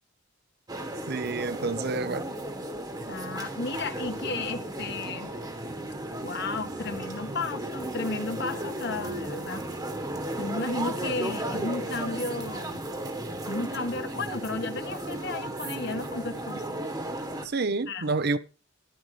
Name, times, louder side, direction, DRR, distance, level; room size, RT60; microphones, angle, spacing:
sound 1, 0.7-17.5, right 1 dB, 20° right, 1.3 m, -35 dB
voice 1, 1.1-2.3 17.4-18.4, right 3 dB, 50° right, 0.6 m, -28 dB
voice 2, 3.1-5.3 6.2-9.7 10.4-12.9 13.5-16.8 17.9-18.1, left 3 dB, 55° left, 1.4 m, -33 dB
14.0 x 10.5 x 3.2 m
head